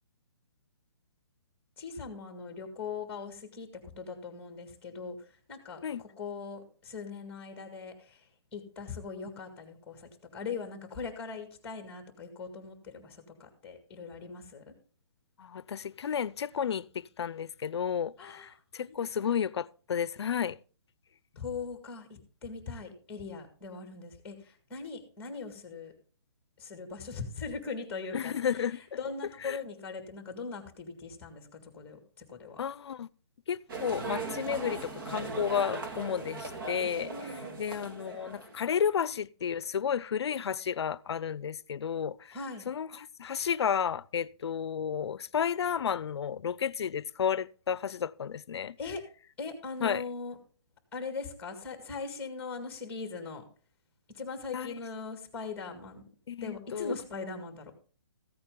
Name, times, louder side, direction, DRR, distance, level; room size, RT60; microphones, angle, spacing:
voice 1, 1.8-14.7 18.2-19.4 21.4-25.9 26.6-32.0 32.3-32.6 37.0-37.6 42.3-42.6 48.8-49.0 49.4-50.4 50.9-53.4 54.1-56.0 56.4-57.7, left 4 dB, 10° left, 1.9 m, -40 dB
voice 2, 15.4-20.6 28.1-28.8 29.4-29.6 32.6-33.1 33.5-42.4 42.7-48.8 49.8-50.0 54.5-54.8 56.3-57.0, left 8 dB, 70° left, 0.5 m, -32 dB
sound 1, 33.7-38.6, right 3 dB, 50° right, 2.0 m, -39 dB
15.0 x 8.7 x 3.8 m
hypercardioid pair, 170°, 14 cm